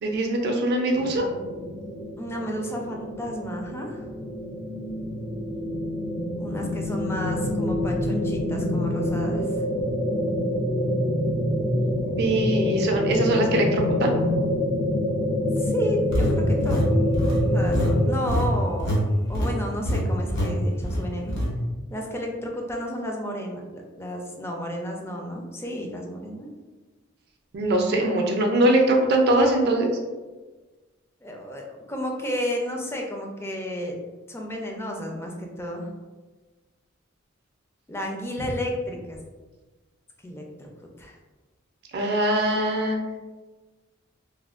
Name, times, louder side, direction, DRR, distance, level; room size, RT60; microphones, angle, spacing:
voice 1, 0.0-1.3 12.1-14.2 27.5-30.0 41.9-43.0, right 1 dB, 55° right, 2 dB, 0.4 m, -22 dB
sound 1, 0.9-18.1, left 1 dB, 85° left, 1.1 m, -26 dB
voice 2, 2.2-4.0 6.4-9.5 14.2-14.3 15.6-16.8 17.5-18.9 19.3-21.4 21.9-26.5 31.2-33.9 34.3-35.9 37.9-39.2 40.2-40.7 41.0-41.1, equal, 10° left, 1 dB, 0.4 m, -32 dB
sound 2, 16.1-19.0 19.3-19.5 19.9-20.0 20.3-20.5 20.8-21.5, equal, 55° left, 0.7 m, -25 dB
3.2 x 2.1 x 2.4 m, 1.3 s
head